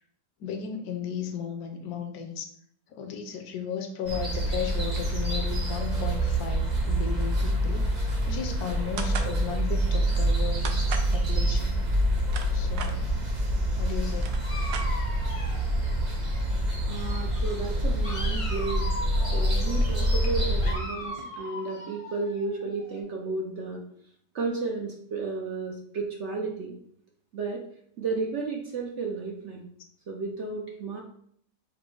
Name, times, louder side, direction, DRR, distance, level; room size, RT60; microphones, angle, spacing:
voice 1, 0.4-2.5 2.9-11.8 12.5-13.1 13.8-14.3, left 7 dB, 70° left, 5 dB, 1.1 m, -35 dB
sound 1, 4.1-20.8, right 1 dB, 35° right, 0.9 m, -26 dB
sound 2, 9.0-9.3 10.6-11.1 12.0-12.9 13.8-13.9 14.1-15.3, right 6 dB, 75° right, 1.1 m, -36 dB
Dog, 14.3-16.7 17.0-23.0, left 1 dB, 50° left, 0.4 m, -40 dB
voice 2, 16.9-18.9 19.3-23.8 24.3-26.8 27.3-27.6 28.0-29.7 30.1-31.0, right 4 dB, 60° right, 0 dB, 0.8 m, -33 dB
5.0 x 2.1 x 4.6 m, 0.65 s
omnidirectional pair, 1.7 m